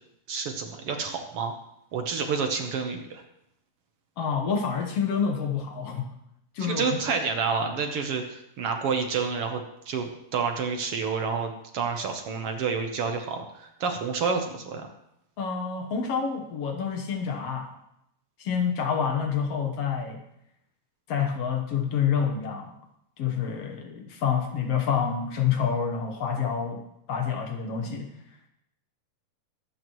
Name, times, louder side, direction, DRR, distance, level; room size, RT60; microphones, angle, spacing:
voice 1, 0.3-1.6 1.9-3.2 6.6-14.9, right 5 dB, 65° right, 4 dB, 1.6 m, -29 dB
voice 2, 4.2-6.1 6.6-6.8 15.4-17.7 18.4-20.2 21.1-22.7 23.2-26.8 27.1-28.1, left 7 dB, 60° left, 3 dB, 1.9 m, -28 dB
24.0 x 8.5 x 3.1 m, 0.79 s
omnidirectional pair, 3.6 m